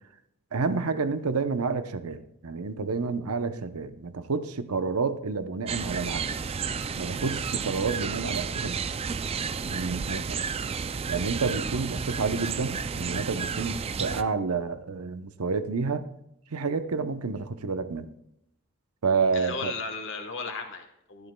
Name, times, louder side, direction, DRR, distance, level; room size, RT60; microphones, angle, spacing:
voice 1, 0.5-6.2 7.0-8.8 9.6-10.4 11.1-16.0 16.5-18.1 19.0-19.7, right 4 dB, 85° right, 0.7 m, -29 dB
sound 1, 5.7-14.2, right 6 dB, 25° right, 0.3 m, -32 dB
voice 2, 19.3-21.3, left 4 dB, 55° left, 1.2 m, -35 dB
15.5 x 12.0 x 2.2 m
head